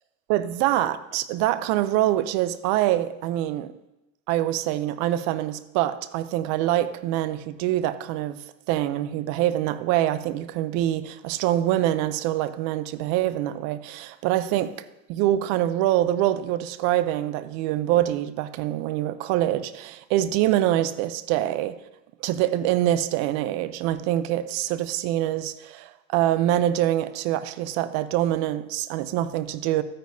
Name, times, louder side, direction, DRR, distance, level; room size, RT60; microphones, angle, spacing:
voice 1, 0.3-3.7 4.3-8.4 8.7-14.8 15.1-21.8 22.2-29.8, right 13 dB, 45° right, 0.5 m, -25 dB
12.5 x 9.4 x 2.7 m
supercardioid pair, 140°, 40 cm